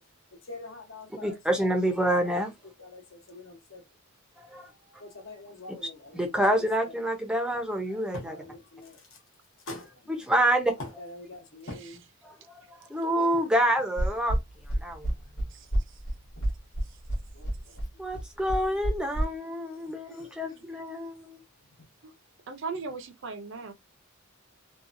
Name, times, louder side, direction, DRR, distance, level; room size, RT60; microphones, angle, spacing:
voice 1, 0.5-1.6 2.2-2.3 2.8-3.8 5.0-6.3 6.8-7.0 8.1-9.0 9.7-9.9 10.8-12.0 17.3-17.5 19.8-20.3, left 2 dB, 60° left, 1.0 m, -43 dB
voice 2, 1.1-2.5 4.4-4.7 5.7-5.8 6.1-8.4 10.1-10.8 12.2-14.4 14.8-15.1 18.0-21.4, right 1 dB, 5° right, 0.6 m, -27 dB
voice 3, 11.6-12.0 15.5-16.0 22.0-22.1 22.5-23.7, right 4 dB, 60° right, 0.6 m, -39 dB
sound 1, 14.0-19.2, right 1 dB, 85° left, 1.2 m, -28 dB
2.7 x 2.3 x 2.5 m
head